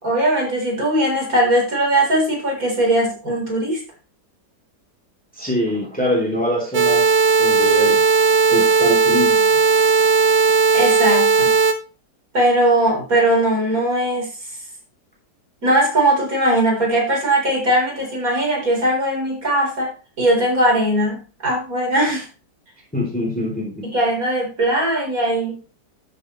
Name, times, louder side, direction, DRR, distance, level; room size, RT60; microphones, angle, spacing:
voice 1, 0.0-3.8 10.7-11.5 12.3-14.3 15.6-19.9 20.2-22.3 23.9-25.6, right 1 dB, 55° right, -1 dB, 4.5 m, -19 dB
voice 2, 5.3-7.1 7.4-8.0 8.5-9.5 22.9-23.9, left 1 dB, 5° left, -1 dB, 3.3 m, -23 dB
sound 1, 6.7-11.7, right 5 dB, 80° right, 1.7 m, -16 dB
12.5 x 7.1 x 3.1 m, 0.33 s
omnidirectional pair, 1.8 m